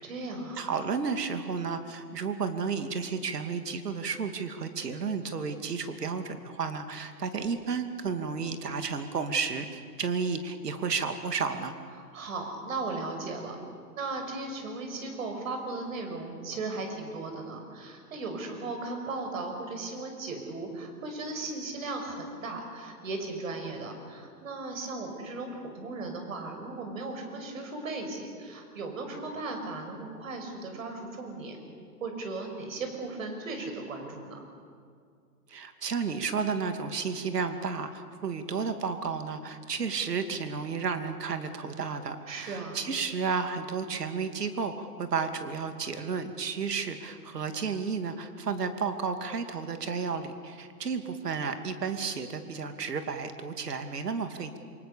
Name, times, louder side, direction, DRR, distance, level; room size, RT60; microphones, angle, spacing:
voice 1, 0.0-0.7 12.1-13.6 13.9-31.6 32.0-34.4 42.3-42.8, right 3 dB, 55° right, 4 dB, 6.1 m, -37 dB
voice 2, 0.6-11.7 35.5-54.6, right 5 dB, 75° right, 8 dB, 2.7 m, -32 dB
27.5 x 25.5 x 7.0 m, 2.2 s
hypercardioid pair, 150°, 48 cm